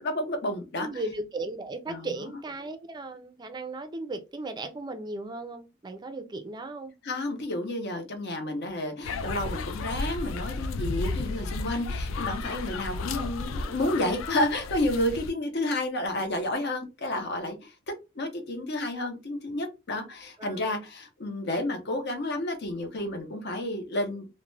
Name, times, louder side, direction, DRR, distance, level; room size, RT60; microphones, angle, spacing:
voice 1, 0.0-0.9 1.9-2.1 7.0-17.7 18.2-24.3, left 1 dB, 55° left, 0.7 m, -30 dB
voice 2, 0.8-6.9 13.2-13.3 20.4-20.8, right 2 dB, 20° right, 0.4 m, -36 dB
sound 1, 9.0-15.3, left 3 dB, 75° left, 0.3 m, -33 dB
2.3 x 2.1 x 3.1 m
head